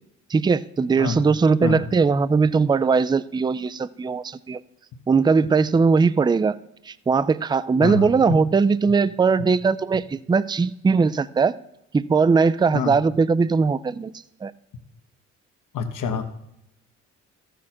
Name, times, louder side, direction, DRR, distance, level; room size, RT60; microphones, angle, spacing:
voice 1, 0.3-4.6 5.1-6.6 6.9-11.5 11.9-14.1 14.4-14.5, right 4 dB, 15° right, 17 dB, 0.4 m, -20 dB
voice 2, 15.7-16.2, left 5 dB, 65° left, 8 dB, 1.2 m, -26 dB
13.5 x 6.5 x 4.3 m, 0.82 s
supercardioid pair, 60°, 34 cm